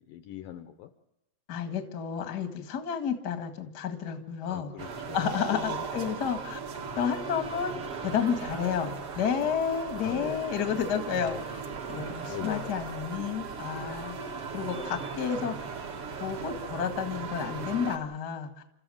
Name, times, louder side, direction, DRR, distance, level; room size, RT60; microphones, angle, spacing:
voice 1, 0.1-0.9 4.4-5.9 10.0-10.4 12.3-12.8, left 12 dB, 75° left, 8 dB, 2.2 m, -40 dB
voice 2, 1.5-4.7 5.1-6.6 7.0-11.6 11.9-14.2 14.5-15.6 16.2-18.6, left 7 dB, 45° left, 6 dB, 1.3 m, -31 dB
sound 1, 4.8-18.0, right 5 dB, 50° right, 1.9 m, -37 dB
29.5 x 14.0 x 7.7 m, 0.93 s
omnidirectional pair, 4.6 m